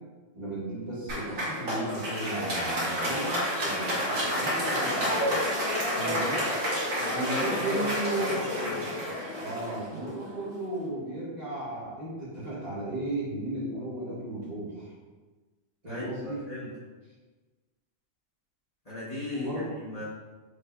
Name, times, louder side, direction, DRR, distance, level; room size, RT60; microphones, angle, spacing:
voice 1, 0.3-5.4 5.9-6.5 7.1-8.4 9.4-14.9 15.8-16.4 19.3-19.7, right 2 dB, 30° right, -9 dB, 1.7 m, -35 dB
Applause, 1.1-10.4, equal, 75° right, 1.7 m, -30 dB
voice 2, 6.9-7.8 8.1-8.3 8.6-8.8 15.9-16.7 18.8-20.0, left 2 dB, 35° left, -9 dB, 1.0 m, -37 dB
6.2 x 3.3 x 2.3 m, 1.3 s
omnidirectional pair, 1.4 m